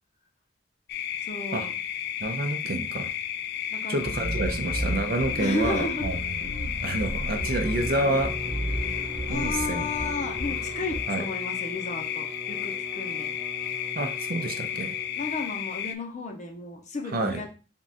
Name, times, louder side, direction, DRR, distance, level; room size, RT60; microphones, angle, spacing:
sound 1, 0.9-16.0, left 10 dB, 55° left, 0.3 m, -33 dB
voice 1, 1.2-1.7 3.7-4.0 5.4-6.2 8.9-13.3 15.1-17.5, left 3 dB, 40° left, 4 dB, 0.7 m, -34 dB
voice 2, 2.2-3.1 3.9-6.2 6.8-8.4 9.3-9.9 11.1-11.3 14.0-14.9 17.1-17.4, right 2 dB, 50° right, 6 dB, 0.6 m, -28 dB
sound 2, 4.0-11.0, right 1 dB, 70° right, 1.0 m, -33 dB
Bowed string instrument, 7.2-15.5, right 1 dB, 5° right, 0.5 m, -42 dB
3.6 x 2.4 x 4.1 m, 0.35 s
head